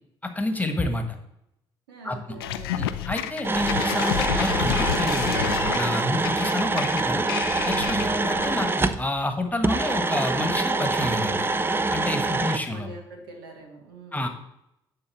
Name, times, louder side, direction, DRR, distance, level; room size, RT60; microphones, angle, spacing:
voice 1, 0.2-1.2 2.0-2.2 2.7-5.4 5.7-7.3 7.6-11.5 11.9-12.9 14.1-14.3, left 2 dB, 15° left, 6 dB, 1.4 m, -29 dB
voice 2, 1.9-3.0 12.2-14.3, right 3 dB, 85° right, 3 dB, 1.5 m, -44 dB
sound 1, 2.4-8.7, left 10 dB, 85° left, 0.4 m, -29 dB
sound 2, 3.4-9.0 9.6-12.6, right 3 dB, 20° right, 0.6 m, -25 dB
8.8 x 3.8 x 7.0 m, 0.82 s
hypercardioid pair, 50°, 12 cm